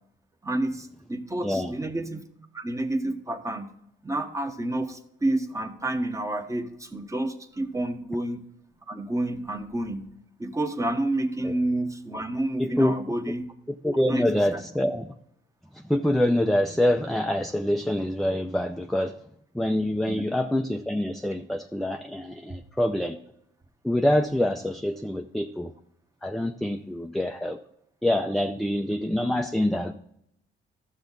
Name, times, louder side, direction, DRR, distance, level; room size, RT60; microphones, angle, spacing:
voice 1, 0.4-2.2 2.5-3.7 4.0-8.4 8.9-10.1 10.4-13.5 14.1-14.6 20.1-20.3, right 1 dB, 15° right, 7 dB, 1.1 m, -29 dB
voice 2, 12.6-12.9 13.8-15.1 15.7-19.2 19.5-23.2 23.8-25.7 26.2-27.6 28.0-29.9, left 1 dB, ahead, 5 dB, 0.5 m, -25 dB
12.5 x 7.2 x 4.0 m, 0.75 s
cardioid pair, 90°, 20 cm